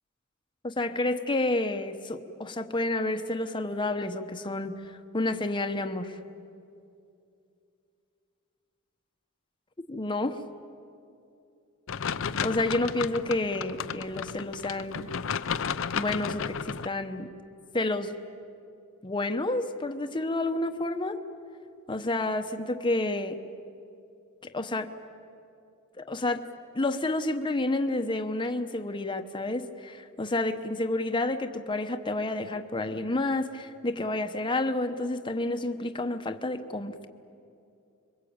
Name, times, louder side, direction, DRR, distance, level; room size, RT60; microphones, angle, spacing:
voice 1, 0.6-6.1 9.9-10.4 12.4-15.1 15.9-17.3 17.7-18.2 19.0-21.2 21.9-23.4 24.4-24.9 26.0-26.4 26.7-37.1, left 2 dB, 25° left, 6 dB, 1.0 m, -30 dB
sound 1, 11.9-16.9, left 6 dB, 65° left, 0.6 m, -33 dB
26.5 x 23.0 x 8.7 m, 2.6 s
head